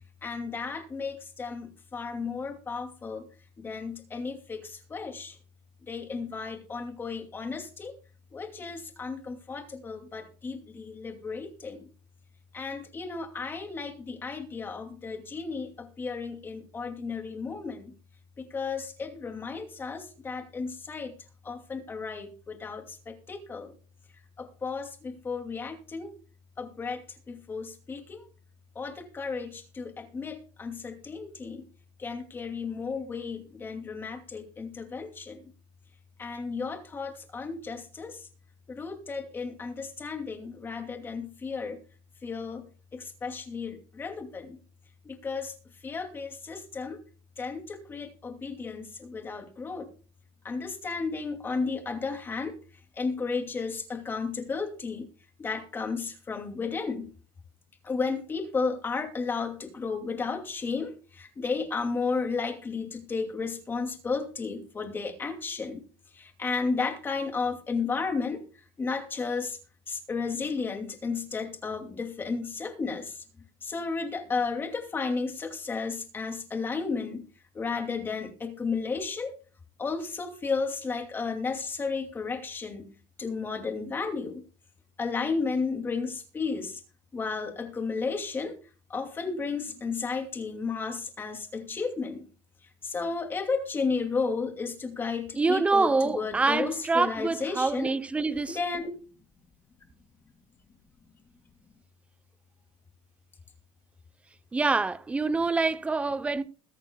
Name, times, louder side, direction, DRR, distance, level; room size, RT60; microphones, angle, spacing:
voice 1, 0.2-3.3 3.6-5.4 5.9-8.0 8.3-11.9 12.5-17.9 18.4-21.2 21.4-23.7 24.4-26.1 26.6-28.3 28.7-31.7 32.0-35.5 36.2-38.3 38.7-41.8 42.2-42.7 42.9-44.6 45.0-45.5 45.8-47.0 47.4-49.9 50.4-52.6 53.0-55.1 55.4-57.1 57.8-65.8 66.1-68.4 68.8-69.6 69.9-73.2 73.6-77.3 77.5-79.4 79.8-84.5 85.0-86.8 87.1-88.6 88.9-92.3 92.8-97.9 98.5-98.9, left 4 dB, 20° left, 2.5 m, -33 dB
voice 2, 95.4-98.6 104.5-106.4, right 3 dB, 10° right, 0.7 m, -26 dB
22.0 x 8.6 x 2.3 m
cardioid pair, 155°, 10 cm